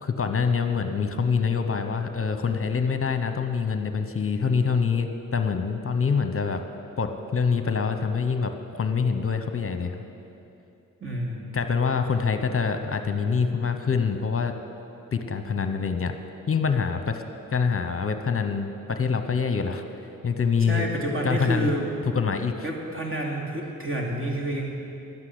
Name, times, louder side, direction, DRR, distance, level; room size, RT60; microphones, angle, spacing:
voice 1, 0.0-6.6 7.0-10.0 11.5-14.5 15.1-16.1 16.5-17.2 17.5-19.8 20.2-20.9 21.2-21.7 22.1-22.6, left 5 dB, 40° left, 7 dB, 1.0 m, -25 dB
voice 2, 11.0-11.5 20.6-21.9 22.6-24.7, right 1 dB, 35° right, 0 dB, 2.8 m, -29 dB
12.0 x 9.7 x 7.9 m, 2.7 s
cardioid pair, 60°, 35 cm